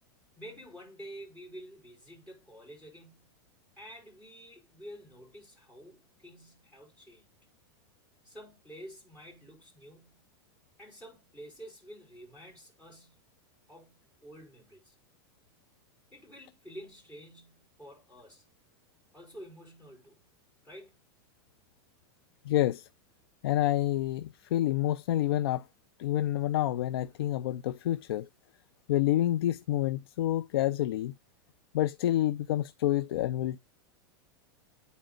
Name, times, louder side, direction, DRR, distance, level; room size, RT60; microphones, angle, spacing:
voice 1, 0.3-3.4 3.8-7.3 8.2-10.3 10.8-13.3 13.7-14.9 16.1-18.5 19.1-20.3 20.6-21.0, equal, 10° left, 5.0 m, -49 dB
voice 2, 22.5-22.9 23.4-25.6 26.0-28.3 28.9-31.1 31.7-33.6, left 13 dB, 80° left, 0.4 m, -28 dB
9.1 x 4.1 x 3.7 m
supercardioid pair, 165°, 13 cm